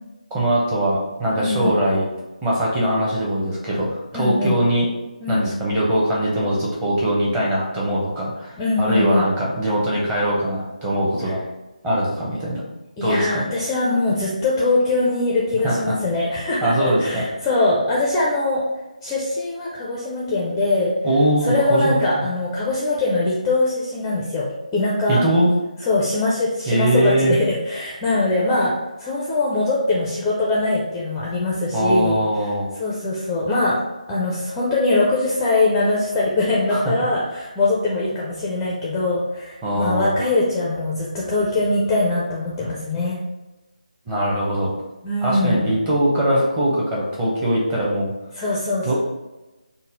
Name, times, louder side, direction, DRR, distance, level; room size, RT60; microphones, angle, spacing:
voice 1, 0.3-2.0 2.4-4.9 5.3-11.4 11.8-12.6 13.0-13.4 15.6-15.9 16.6-17.2 21.0-22.2 25.1-25.5 26.7-27.4 31.7-32.7 36.7-36.8 39.6-40.2 44.1-44.7 45.2-48.1 48.8-48.9, right 1 dB, 15° right, -5 dB, 0.8 m, -21 dB
voice 2, 1.4-1.7 4.1-4.6 5.2-5.5 8.6-9.3 13.0-18.6 19.0-20.9 21.4-25.2 25.8-28.7 29.0-32.2 32.8-33.8 34.1-43.2 45.0-45.7 48.3-48.9, left 2 dB, 10° left, -5 dB, 0.4 m, -22 dB
4.1 x 2.1 x 3.7 m, 1.1 s
figure-of-eight pair, 160°, 4 cm